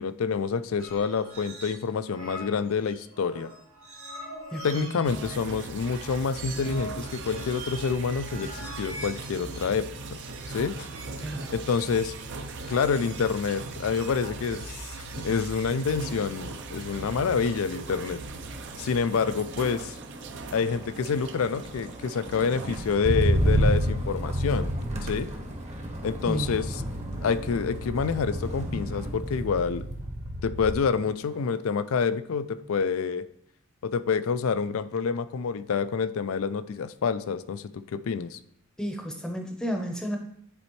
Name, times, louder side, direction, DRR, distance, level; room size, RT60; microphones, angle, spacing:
voice 1, 0.0-3.5 4.6-10.2 10.5-10.9 11.5-12.1 12.7-18.2 18.7-19.9 20.5-24.7 25.0-25.3 26.0-26.8 27.2-29.9 30.4-33.3 33.8-38.4, left 5 dB, 65° left, 14 dB, 0.4 m, -28 dB
sound 1, 0.8-1.8 2.1-18.8, right 2 dB, 70° right, 1.3 m, -44 dB
voice 2, 4.5-5.0 11.2-11.5 26.3-26.6 38.8-40.2, equal, 5° left, 2 dB, 0.7 m, -32 dB
sound 2, 5.0-23.0, right 3 dB, 55° right, 0.5 m, -40 dB
Motor vehicle (road), 15.8-16.1 16.5-30.9 31.3-31.7, right 1 dB, 30° right, 0.9 m, -31 dB
9.9 x 4.2 x 3.1 m, 0.74 s
head